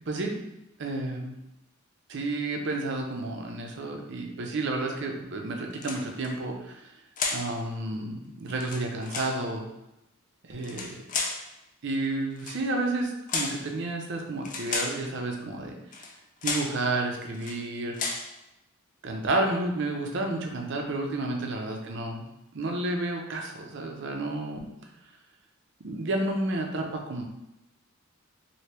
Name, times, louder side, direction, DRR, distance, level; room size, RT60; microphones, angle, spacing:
voice 1, 0.1-0.4 0.8-1.4 2.1-6.9 7.3-9.7 10.4-11.0 11.8-15.8 16.4-18.0 19.0-22.2 22.5-24.7 25.8-27.2, right 2 dB, 60° right, 2 dB, 0.5 m, -31 dB
sound 1, 5.7-6.3 7.2-7.5 8.5-9.4 10.6-11.4 12.4-12.6 13.3-13.6 14.4-15.0 15.9-16.1 16.4-16.8 17.3-17.6 17.9-18.3, left 4 dB, 40° left, 0.4 m, -32 dB
2.9 x 2.7 x 3.2 m, 0.90 s
head